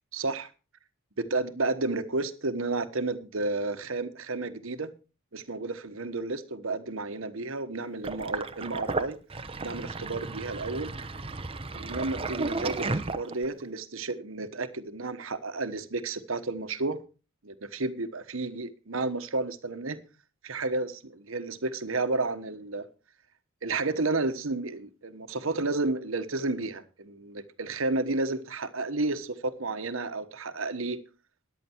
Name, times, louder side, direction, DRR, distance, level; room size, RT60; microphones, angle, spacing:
voice 1, 0.1-0.5 1.2-4.9 5.3-9.2 9.6-10.9 11.7-17.0 17.4-20.0 20.4-22.9 23.6-31.0, right 3 dB, 75° right, 1.3 m, -31 dB
Sink (filling or washing), 8.0-13.6, right 3 dB, 25° right, 0.8 m, -33 dB
14.0 x 10.5 x 4.5 m
head